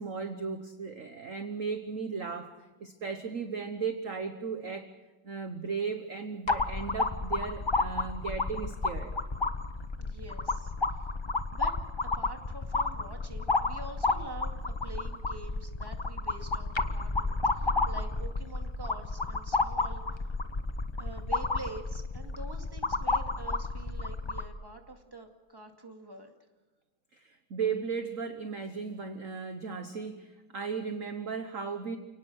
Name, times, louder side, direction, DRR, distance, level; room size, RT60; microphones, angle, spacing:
voice 1, 0.0-4.9 5.2-9.1 27.1-32.0, right 5 dB, 45° right, 7 dB, 1.3 m, -36 dB
sound 1, 6.5-24.5, left 3 dB, 35° left, 0.4 m, -31 dB
voice 2, 10.0-11.1 11.5-11.8 12.0-20.3 21.0-26.3, right 2 dB, 10° right, 3 dB, 2.1 m, -46 dB
29.5 x 18.5 x 6.3 m, 1.2 s
omnidirectional pair, 2.1 m